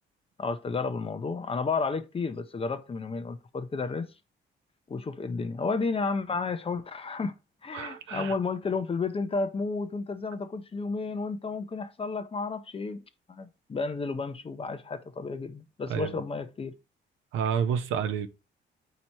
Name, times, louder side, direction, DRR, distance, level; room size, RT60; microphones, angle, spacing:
voice 1, 0.4-4.1 4.9-7.3 7.6-13.0 13.3-16.7, left 4 dB, 30° left, 0.6 m, -32 dB
voice 2, 7.7-8.4 15.9-16.2 17.3-18.3, right 7 dB, 80° right, 0.6 m, -29 dB
4.3 x 2.9 x 4.3 m
cardioid pair, 90°, 20 cm